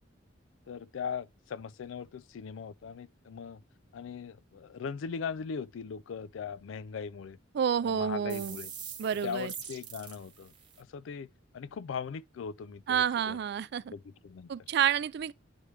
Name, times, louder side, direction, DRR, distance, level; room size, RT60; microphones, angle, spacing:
voice 1, 0.7-3.6 3.9-7.4 7.8-8.7 9.2-11.3 11.5-13.4 13.9-14.5, left 6 dB, 80° left, 0.4 m, -39 dB
voice 2, 7.5-8.6 9.0-9.5 12.9-13.9 14.5-15.3, right 8 dB, 60° right, 0.3 m, -29 dB
sound 1, 8.3-10.8, right 7 dB, 25° right, 1.4 m, -44 dB
9.6 x 3.3 x 3.2 m
head